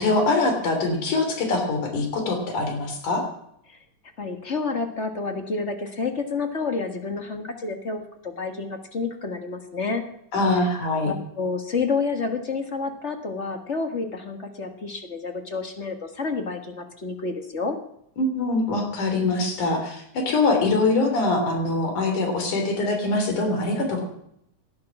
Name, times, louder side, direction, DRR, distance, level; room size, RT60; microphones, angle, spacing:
voice 1, 0.0-3.2 10.3-11.1 18.2-24.0, left 2 dB, 80° left, 4 dB, 4.6 m, -23 dB
voice 2, 4.2-10.0 11.0-17.8, left 4 dB, 35° left, 6 dB, 1.2 m, -29 dB
18.0 x 11.5 x 6.0 m, 0.74 s
omnidirectional pair, 3.5 m